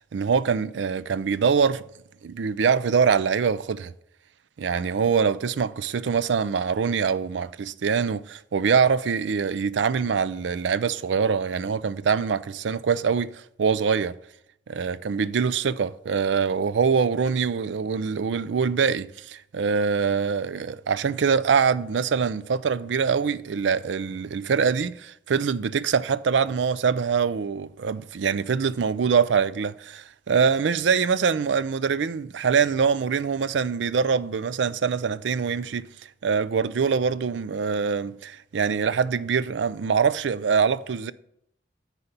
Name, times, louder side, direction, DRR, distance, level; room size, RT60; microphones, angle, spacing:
voice 1, 0.0-1.8 2.2-3.9 4.6-14.1 14.7-35.9 36.2-41.1, right 6 dB, 85° right, 0.4 m, -24 dB
9.8 x 4.2 x 6.7 m
head